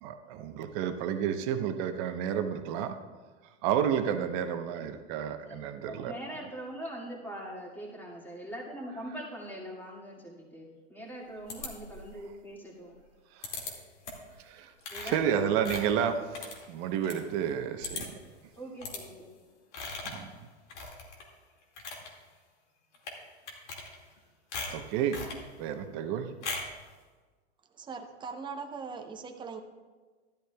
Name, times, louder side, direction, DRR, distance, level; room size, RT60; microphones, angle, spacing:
voice 1, 0.0-3.0 3.6-6.1 13.3-13.6 14.4-14.7 15.0-18.1 20.0-20.3 24.7-25.2 25.6-26.3, right 8 dB, 45° right, 7 dB, 0.9 m, -31 dB
voice 2, 5.4-13.0 14.9-15.8 18.6-19.3, right 1 dB, 5° left, -3 dB, 2.1 m, -42 dB
sound 1, 11.5-12.2 13.4-13.7 14.0-14.3 14.8-17.2 17.5-17.6 17.8-18.3 18.8-19.0 19.7-20.3 20.7-21.3 21.6-22.1 22.9-23.2 23.5-24.2 24.5-25.4 26.4-26.8, left 3 dB, 75° left, 2.2 m, -39 dB
voice 3, 27.7-29.6, right 5 dB, 15° right, 4 dB, 0.7 m, -40 dB
13.5 x 12.0 x 2.3 m, 1.4 s
hypercardioid pair, 120°, 35 cm